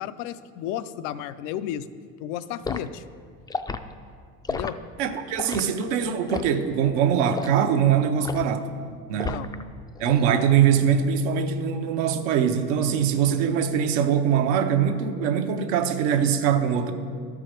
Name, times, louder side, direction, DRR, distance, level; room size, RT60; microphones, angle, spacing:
voice 1, 0.0-1.9 2.2-3.0 4.5-4.8 9.2-9.5, left 11 dB, 75° left, 0.5 m, -33 dB
Liquid, 2.6-2.9 3.5-3.8 4.4-4.7 5.4-5.7 6.3-6.6 7.3-7.6 8.2-8.5 9.2-9.6 10.0-10.2, left 4 dB, 10° left, 0.3 m, -32 dB
voice 2, 5.0-8.7 9.1-9.5 10.0-16.9, right 8 dB, 85° right, 0.9 m, -22 dB
12.5 x 4.8 x 5.1 m
supercardioid pair, 90°, 35 cm